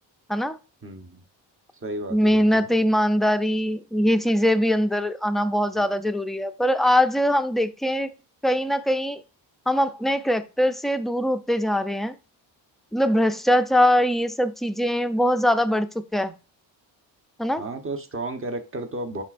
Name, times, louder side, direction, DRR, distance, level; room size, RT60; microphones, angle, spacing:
voice 1, 0.8-1.2 1.8-2.7 5.7-5.9 17.6-19.2, right 2 dB, 30° right, 1.1 m, -33 dB
voice 2, 2.1-8.1 8.4-9.2 9.7-12.1 12.9-16.3 17.4-17.6, equal, ahead, 0.4 m, -22 dB
11.0 x 4.2 x 2.6 m
cardioid pair, 110°, 45 cm